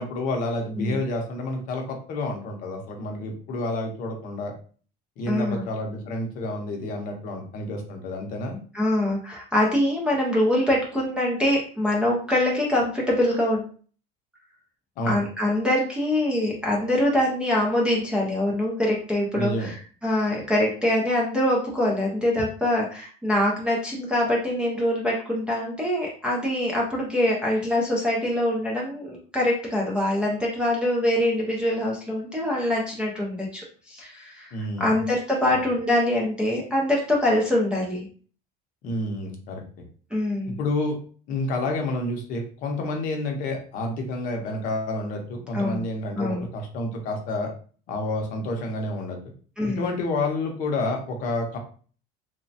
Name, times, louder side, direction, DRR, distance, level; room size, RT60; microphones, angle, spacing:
voice 1, 0.0-4.5 5.2-8.6 15.0-15.2 19.3-19.7 34.5-34.9 35.4-35.6 38.8-39.6 40.6-41.0 41.3-47.5 47.9-49.2 49.7-51.6, left 2 dB, 45° left, 2 dB, 0.6 m, -29 dB
voice 2, 5.3-5.6 8.7-13.7 15.0-38.1 40.1-40.6 45.5-45.8 46.1-46.4 49.6-49.9, left 1 dB, 5° right, -5 dB, 0.3 m, -24 dB
3.1 x 2.1 x 2.6 m, 0.42 s
cardioid pair, 170°, 20 cm